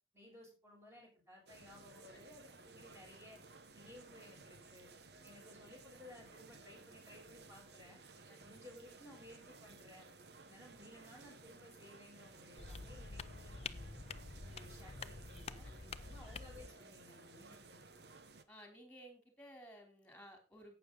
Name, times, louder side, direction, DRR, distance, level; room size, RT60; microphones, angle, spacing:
voice 1, 0.1-3.4 3.7-4.9 5.2-8.0 8.4-10.1 10.4-13.9 14.4-15.7 16.0-18.1, left 1 dB, 15° right, -1 dB, 6.0 m, -58 dB
sound 1, 1.5-18.4, right 3 dB, 65° right, 1.1 m, -58 dB
voice 2, 2.1-2.6 8.3-8.5 15.6-16.2 17.5-17.6 18.5-20.8, equal, 10° left, 4 dB, 3.6 m, -58 dB
sound 2, 12.6-16.7, left 4 dB, 35° left, 0.6 m, -48 dB
12.0 x 9.0 x 3.9 m, 0.31 s
head